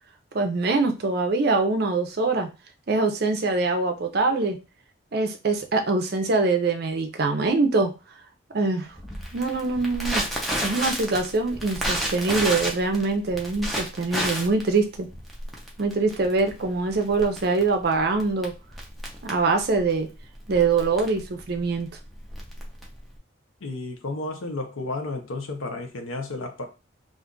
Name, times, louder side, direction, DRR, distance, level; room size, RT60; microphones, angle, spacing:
voice 1, 0.3-2.5 2.9-4.6 5.1-7.9 8.5-8.9 9.3-10.2 10.6-15.1 15.8-18.5 19.2-20.1 20.5-21.9, right 3 dB, 50° right, 5 dB, 0.5 m, -23 dB
Crackle, 9.0-23.2, equal, ahead, 0.5 m, -32 dB
voice 2, 23.6-26.6, left 2 dB, 85° left, 5 dB, 0.7 m, -32 dB
2.5 x 2.4 x 3.7 m, 0.30 s
head